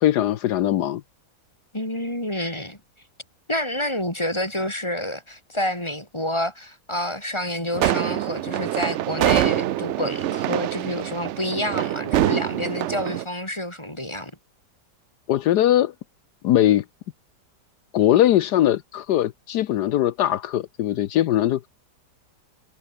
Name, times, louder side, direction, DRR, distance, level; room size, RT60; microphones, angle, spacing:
voice 1, 0.0-1.0 15.3-15.9 16.4-16.8 17.9-21.7, left 12 dB, 75° left, 1.3 m, -20 dB
voice 2, 1.7-2.8 3.5-14.3, left 1 dB, 15° left, 4.5 m, -28 dB
sound 1, 7.7-13.2, right 13 dB, 85° right, 0.6 m, -25 dB
omnidirectional pair, 1.8 m